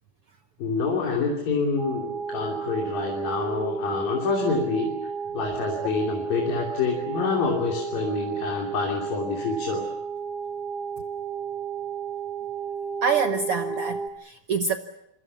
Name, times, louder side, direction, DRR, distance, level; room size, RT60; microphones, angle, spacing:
voice 1, 0.6-9.9, left 4 dB, 70° left, 0 dB, 4.8 m, -27 dB
sound 1, 1.8-14.1, right 5 dB, 55° right, 1.1 m, -32 dB
voice 2, 13.0-14.8, right 6 dB, 75° right, 6 dB, 1.3 m, -26 dB
27.0 x 24.0 x 7.0 m, 0.82 s
omnidirectional pair, 4.1 m